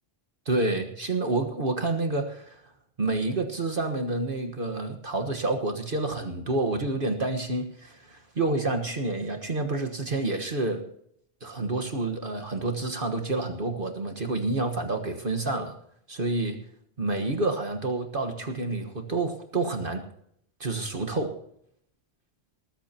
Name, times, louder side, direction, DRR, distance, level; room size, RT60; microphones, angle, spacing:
voice 1, 0.4-2.6 3.0-10.8 11.4-15.7 16.1-16.6 17.0-20.0 20.6-21.3, right 2 dB, 50° right, 5 dB, 1.6 m, -28 dB
19.5 x 14.0 x 2.9 m, 0.70 s
omnidirectional pair, 1.2 m